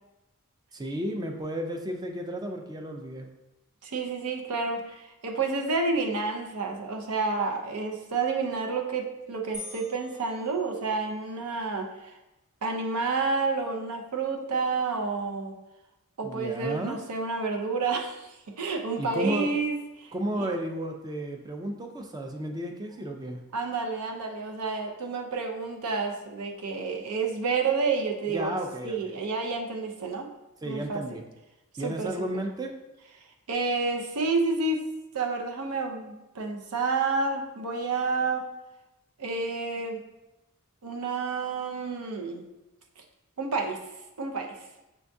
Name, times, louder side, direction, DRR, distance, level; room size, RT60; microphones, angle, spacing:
voice 1, 0.7-3.3 16.2-17.0 19.0-19.5 20.1-23.4 28.3-29.2 30.6-31.2 31.8-32.7, right 1 dB, 20° right, 3 dB, 0.4 m, -33 dB
voice 2, 3.8-12.1 12.6-15.5 16.2-20.5 23.5-28.6 28.8-30.3 30.6-31.2 31.8-32.4 33.5-34.9 35.1-38.5 39.2-40.0 40.8-42.4 43.0-43.1 43.4-43.8 44.2-44.5, right 4 dB, 90° right, 3 dB, 0.6 m, -30 dB
sound 1, 9.5-11.3, left 2 dB, 5° right, 0.8 m, -45 dB
6.2 x 2.3 x 2.6 m, 0.96 s
head